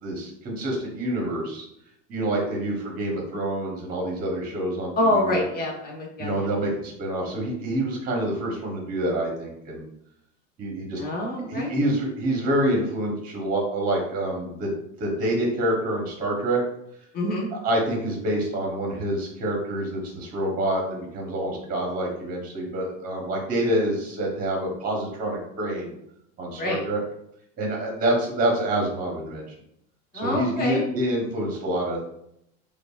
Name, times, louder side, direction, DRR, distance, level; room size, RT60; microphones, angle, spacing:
voice 1, 0.0-1.7 2.1-5.5 6.2-9.9 10.6-11.0 11.5-16.6 17.5-25.9 26.4-27.0 27.6-29.4 30.1-32.0, right 1 dB, 25° right, -1 dB, 0.9 m, -27 dB
voice 2, 5.0-6.7 11.0-11.8 17.1-17.5 26.6-26.8 30.1-30.8, left 1 dB, 25° left, -2 dB, 1.2 m, -26 dB
5.1 x 2.4 x 2.4 m, 0.76 s
supercardioid pair, 135°, 35 cm